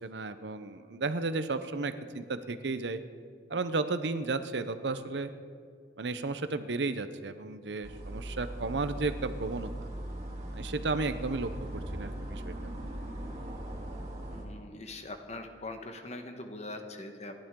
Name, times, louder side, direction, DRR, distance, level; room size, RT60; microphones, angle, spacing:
voice 1, 0.0-3.0 3.5-5.3 6.0-9.9 10.5-12.7, right 3 dB, 75° right, 11 dB, 0.8 m, -33 dB
sound 1, 7.8-14.5, right 1 dB, 40° right, 2.7 m, -39 dB
voice 2, 14.3-17.3, left 2 dB, 40° left, 5 dB, 1.3 m, -42 dB
29.0 x 11.5 x 3.8 m, 2.2 s
head